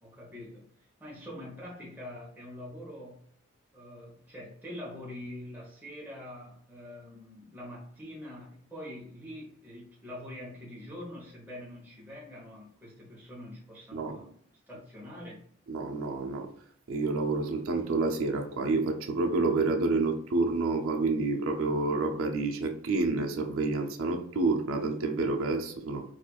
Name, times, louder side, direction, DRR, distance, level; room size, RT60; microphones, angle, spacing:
voice 1, 0.0-3.3 3.7-14.4 14.7-15.4, left 1 dB, 10° right, 0.9 m, -44 dB
voice 2, 15.7-16.5 16.9-26.0, right 3 dB, 85° right, 0.5 m, -29 dB
4.3 x 2.4 x 2.3 m
head